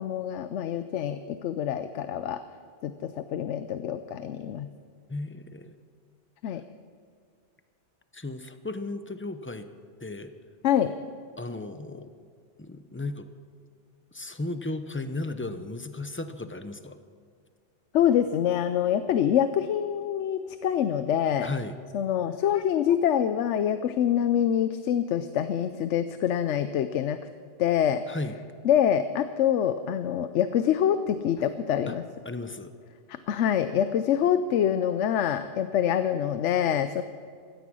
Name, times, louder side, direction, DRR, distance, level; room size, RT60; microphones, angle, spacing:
voice 1, 0.0-2.4 2.8-4.7 6.4-6.6 10.6-10.9 17.9-21.5 21.9-27.2 27.6-28.0 28.6-32.0 33.3-37.0, left 9 dB, 85° left, 11 dB, 0.9 m, -25 dB
voice 2, 5.1-5.7 8.1-9.7 10.0-10.3 11.4-12.1 12.6-13.3 14.1-17.0 21.4-21.8 28.1-28.4 31.9-32.0 32.2-32.7, left 2 dB, 15° left, 9 dB, 0.6 m, -35 dB
17.0 x 13.5 x 6.2 m, 2.2 s
omnidirectional pair, 1.2 m